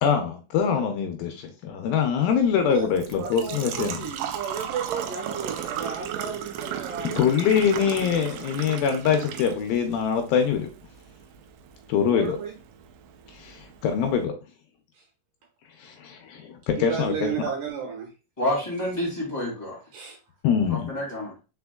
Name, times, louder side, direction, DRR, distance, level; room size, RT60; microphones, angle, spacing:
voice 1, 0.0-4.1 7.2-10.7 11.9-12.4 13.3-14.3 15.8-17.3 20.4-20.9, left 7 dB, 80° left, 5 dB, 2.3 m, -24 dB
Engine / Trickle dribble / Fill (with liquid), 2.3-14.2, right 9 dB, 85° right, 1.9 m, -36 dB
voice 2, 3.2-7.2 12.1-12.5 14.9-15.0 16.7-18.1 19.9-20.2, right 7 dB, 70° right, 0 dB, 2.3 m, -33 dB
voice 3, 18.4-19.8 20.7-21.3, left 1 dB, 15° left, -5 dB, 1.5 m, -28 dB
5.2 x 4.2 x 2.3 m, 0.32 s
omnidirectional pair, 4.4 m